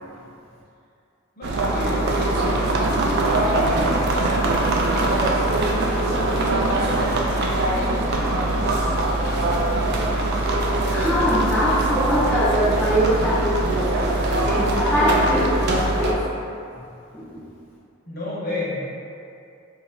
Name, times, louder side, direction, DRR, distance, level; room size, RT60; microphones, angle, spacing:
voice 1, 1.4-2.4 3.0-4.3 5.0-9.6 13.1-13.9 18.1-18.8, left 1 dB, 45° left, -7 dB, 0.9 m, -34 dB
sound 1, 1.4-16.1, right 2 dB, 50° right, 0.4 m, -22 dB
voice 2, 10.9-13.5 13.8-13.9 14.4-15.5 15.9-16.2 16.8-16.9 17.1-17.4, equal, 10° left, -11 dB, 0.5 m, -22 dB
2.8 x 2.5 x 4.2 m, 2.5 s
head